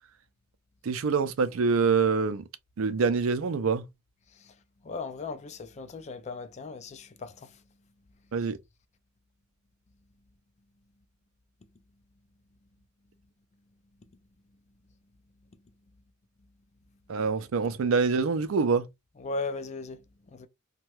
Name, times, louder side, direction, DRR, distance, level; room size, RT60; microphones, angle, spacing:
voice 1, 0.8-2.4 2.8-3.8 8.3-8.6 17.1-18.9, right 5 dB, 80° right, 0.4 m, -25 dB
voice 2, 4.8-7.6 19.2-20.0 20.3-20.5, left 3 dB, 35° left, 0.4 m, -37 dB
2.7 x 2.2 x 3.1 m
head